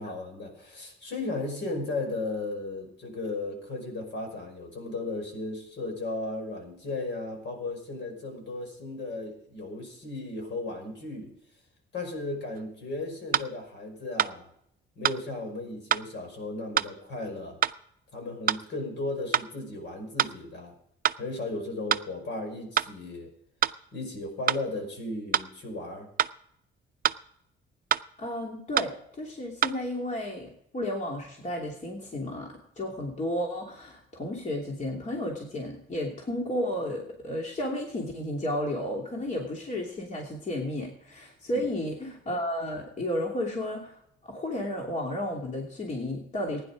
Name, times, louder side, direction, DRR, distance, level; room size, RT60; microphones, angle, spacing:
voice 1, 0.0-11.3 11.9-14.5 15.0-17.6 18.1-20.7 21.2-23.3 23.9-26.1 41.5-41.7, left 2 dB, 65° left, 3 dB, 5.4 m, -35 dB
sound 1, 12.5-12.6 13.3-13.5 14.2-14.3 15.0-15.2 15.9-16.1 16.8-16.9 17.6-17.8 18.5-18.6 19.3-19.5 20.2-20.4 21.0-21.2 21.9-22.1 22.8-22.9 23.6-23.8 24.5-24.6 25.3-25.5 26.2-26.4 27.0-27.2 27.9-28.1 28.8-28.9 29.6-29.8, right 9 dB, 45° right, 0.5 m, -26 dB
voice 2, 28.2-46.6, left 1 dB, 35° left, -1 dB, 2.9 m, -33 dB
16.0 x 10.0 x 5.0 m, 0.71 s
cardioid pair, 90°, 20 cm